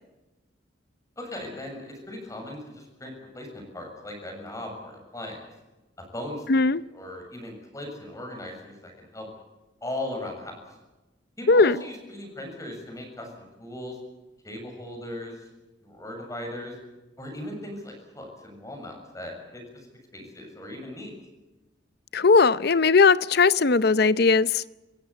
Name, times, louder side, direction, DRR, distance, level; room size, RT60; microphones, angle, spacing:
voice 1, 1.2-5.5 6.1-6.6 6.9-9.3 9.8-10.6 11.4-14.0 14.4-15.4 15.8-16.7 17.2-19.6 20.1-21.1, left 1 dB, 15° left, 7.0 m, -38 dB
voice 2, 6.5-6.8 11.5-11.8 22.1-24.6, left 4 dB, 55° left, 0.7 m, -18 dB
27.5 x 15.5 x 8.4 m
head